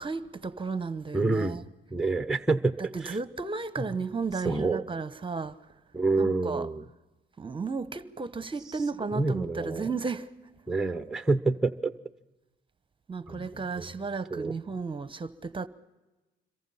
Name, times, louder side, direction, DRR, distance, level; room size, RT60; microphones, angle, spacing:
voice 1, 0.0-1.6 2.9-5.6 6.2-6.7 7.4-10.3 13.1-15.7, right 4 dB, 25° right, 1.0 m, -34 dB
voice 2, 1.1-1.6 1.9-3.2 4.4-4.8 5.9-6.8 9.1-9.9 10.7-11.9 13.3-13.8 14.3-14.5, right 3 dB, 5° right, 0.9 m, -28 dB
26.5 x 23.0 x 5.7 m
cardioid pair, 90°, 20 cm